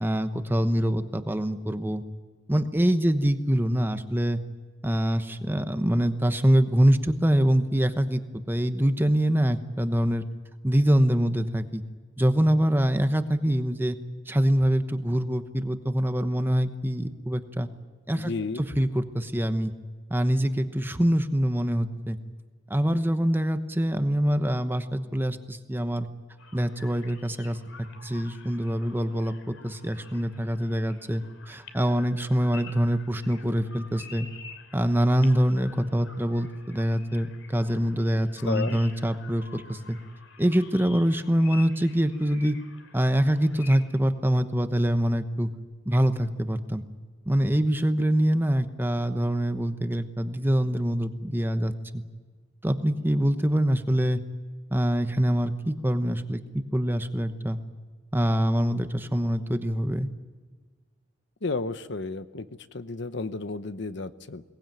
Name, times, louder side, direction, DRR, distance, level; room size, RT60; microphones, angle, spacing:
voice 1, 0.0-2.0 2.5-4.4 4.8-8.2 8.5-10.2 10.6-11.8 12.2-14.0 14.3-17.7 18.1-18.3 18.6-19.7 20.1-22.2 22.7-26.1 26.5-27.6 28.0-34.3 34.7-40.0 40.4-42.6 42.9-45.5 45.9-46.8 47.3-52.0 52.6-54.2 54.7-57.6 58.1-60.1, equal, 10° right, 9 dB, 1.0 m, -24 dB
voice 2, 18.2-18.6 38.5-38.8 61.4-62.5 62.7-64.4, left 3 dB, 60° left, 12 dB, 0.8 m, -32 dB
sound 1, 26.4-44.0, left 5 dB, 85° left, 3.1 m, -49 dB
22.5 x 18.5 x 9.1 m, 1.5 s
head